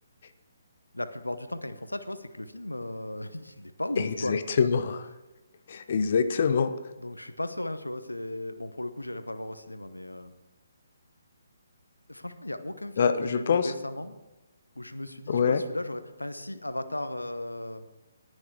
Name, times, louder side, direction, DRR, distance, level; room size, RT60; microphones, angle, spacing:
voice 1, 0.9-4.4 7.0-10.3 12.1-14.2 14.7-17.9, left 1 dB, 90° left, 11 dB, 0.9 m, -36 dB
voice 2, 4.0-5.1 5.7-6.7 13.0-13.7 15.3-15.6, left 6 dB, 50° left, 11 dB, 0.8 m, -25 dB
18.5 x 6.5 x 4.7 m, 1.0 s
figure-of-eight pair, 140°, 0 cm